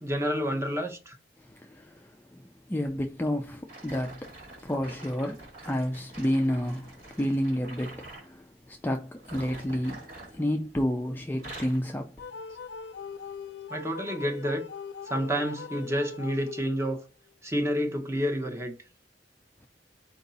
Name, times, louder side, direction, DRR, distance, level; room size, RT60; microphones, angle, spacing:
voice 1, 0.0-1.2 13.7-14.7 15.1-17.0 17.4-18.7, equal, 15° right, 0.8 m, -29 dB
voice 2, 1.4-4.3 4.6-10.1 10.3-12.2, equal, 10° left, 0.4 m, -30 dB
sound 1, 3.7-8.3 9.1-10.9 11.2-11.9 12.5-12.7 13.3-13.4, right 1 dB, 60° right, 2.1 m, -46 dB
sound 2, 12.2-17.1, left 5 dB, 85° left, 0.5 m, -41 dB
4.6 x 2.7 x 4.0 m
head